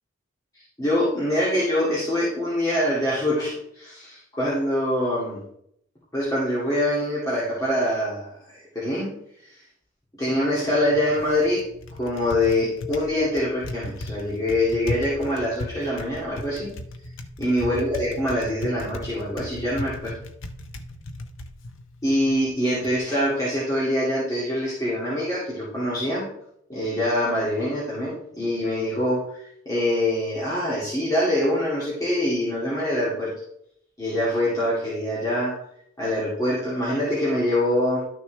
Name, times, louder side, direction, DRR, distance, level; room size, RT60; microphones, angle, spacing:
voice 1, 0.8-5.4 6.1-9.1 9.4-9.6 10.2-11.7 12.0-16.7 17.4-20.1 22.0-26.3 26.7-33.3 34.0-35.6 36.0-38.0, left 1 dB, 20° left, -9 dB, 2.4 m, -24 dB
Typing, 10.5-23.0, left 1 dB, 70° left, 0.8 m, -37 dB
12.0 x 6.3 x 3.3 m, 0.73 s
head